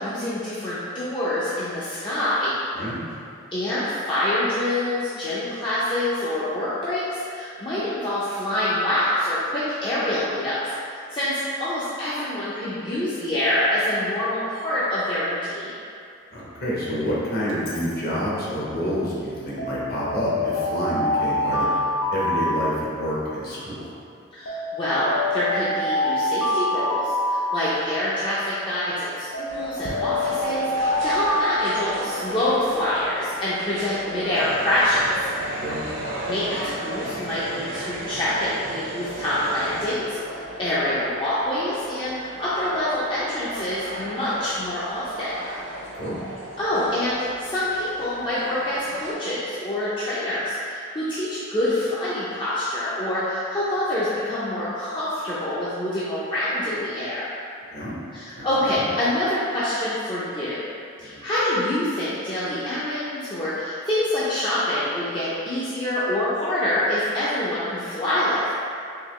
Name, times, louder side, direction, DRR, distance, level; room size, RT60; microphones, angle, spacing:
voice 1, 0.0-2.5 3.5-15.7 24.3-35.3 36.2-40.2 40.6-45.3 46.6-57.3 58.1-60.6 61.0-68.6, left 1 dB, 25° left, -11 dB, 0.4 m, -26 dB
voice 2, 2.7-3.1 16.3-21.7 22.1-23.8 35.5-35.8 45.9-46.2 57.7-57.9 58.3-58.5 58.7-58.9 61.0-61.2, equal, 50° left, -7 dB, 0.9 m, -28 dB
Alarm, 17.5-17.9 19.6-23.3 24.5-28.2 29.3-32.5, left 1 dB, 90° left, 0.6 m, -26 dB
sound 1, 29.5-49.1, right 1 dB, 80° right, 0.7 m, -36 dB
sound 2, 34.3-39.9, right 1 dB, 45° right, 0.4 m, -36 dB
3.8 x 2.8 x 3.0 m, 2.4 s
head